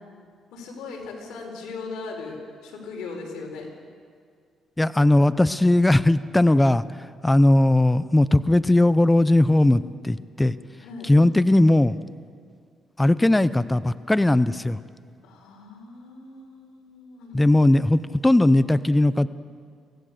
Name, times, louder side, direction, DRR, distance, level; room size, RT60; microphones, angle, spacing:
voice 1, 0.5-3.7 10.8-11.1 15.2-17.4, left 4 dB, 90° left, 1 dB, 4.8 m, -38 dB
voice 2, 4.8-6.8 7.2-10.5 11.0-12.0 13.0-14.8 17.3-19.3, left 1 dB, 10° left, 15 dB, 0.7 m, -18 dB
24.0 x 17.0 x 6.8 m, 2.2 s
cardioid pair, 90°, 0 cm